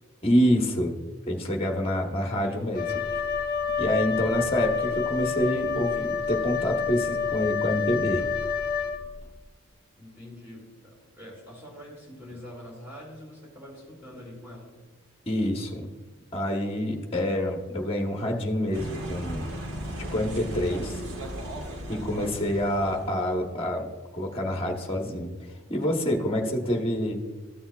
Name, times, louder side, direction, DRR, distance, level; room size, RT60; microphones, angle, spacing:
voice 1, 0.2-1.0 1.3-3.0 3.8-8.3 15.3-15.9 16.3-19.5 20.1-21.0 21.9-23.9 24.1-25.3 25.7-27.2, equal, 25° left, 1 dB, 1.0 m, -27 dB
voice 2, 2.2-3.2 10.0-14.7, left 1 dB, 10° right, -5 dB, 2.2 m, -45 dB
Wind instrument woodwind instrument, 2.7-9.3, left 6 dB, 45° left, 0.7 m, -28 dB
sound 1, 18.7-23.4, right 1 dB, 65° right, 1.4 m, -36 dB
13.5 x 7.1 x 2.3 m, 1.4 s
head